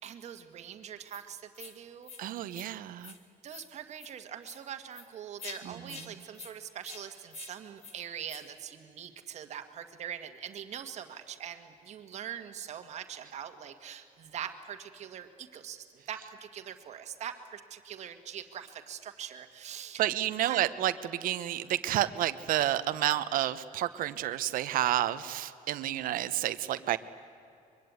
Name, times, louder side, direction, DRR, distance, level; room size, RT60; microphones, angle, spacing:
voice 1, 0.0-2.5 3.4-20.1 20.4-20.7, right 9 dB, 50° right, 8 dB, 1.7 m, -43 dB
sound 1, 1.1-1.2 1.5-1.7 2.0-2.2 2.5-2.7 3.0-3.2 3.5-3.7 4.0-4.1 4.4-4.6 4.9-5.1 5.4-5.6 5.9-6.1 6.3-6.5 6.8-7.0 7.3-7.5 7.8-7.9 8.3-8.4, left 5 dB, 45° left, 2.5 m, -46 dB
voice 2, 2.2-3.1 5.6-6.1 20.0-27.0, right 13 dB, 75° right, 13 dB, 0.9 m, -30 dB
24.0 x 23.0 x 9.6 m, 2.6 s
cardioid pair, 170°, 14 cm